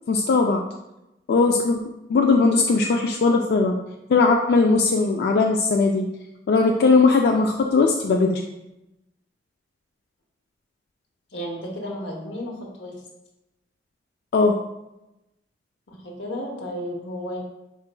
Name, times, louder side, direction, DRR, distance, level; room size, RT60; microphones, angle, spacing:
voice 1, 0.1-0.6 1.3-1.8 2.1-3.8 4.1-6.1 6.5-8.4 14.3-14.5, left 4 dB, 60° left, 2 dB, 0.3 m, -19 dB
voice 2, 11.3-12.9 15.9-17.4, equal, 90° left, 0 dB, 1.0 m, -33 dB
4.5 x 4.4 x 2.2 m, 0.93 s
head